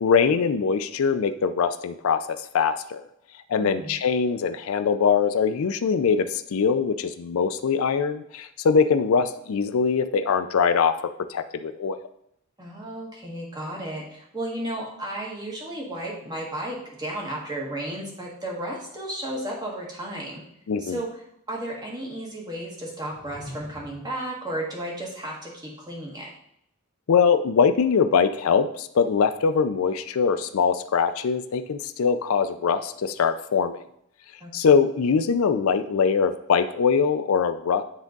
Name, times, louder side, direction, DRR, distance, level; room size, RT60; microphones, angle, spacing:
voice 1, 0.0-2.2 2.5-3.0 3.5-10.9 11.3-12.0 20.7-21.0 27.1-33.8 34.5-37.8, left 6 dB, 75° left, 10 dB, 0.4 m, -22 dB
voice 2, 3.6-3.9 12.6-20.4 20.8-26.3 34.4-34.5, right 1 dB, 20° right, -3 dB, 1.7 m, -33 dB
sound 1, 22.9-24.2, equal, 40° left, 1.3 m, -44 dB
9.6 x 3.6 x 3.9 m, 0.75 s
head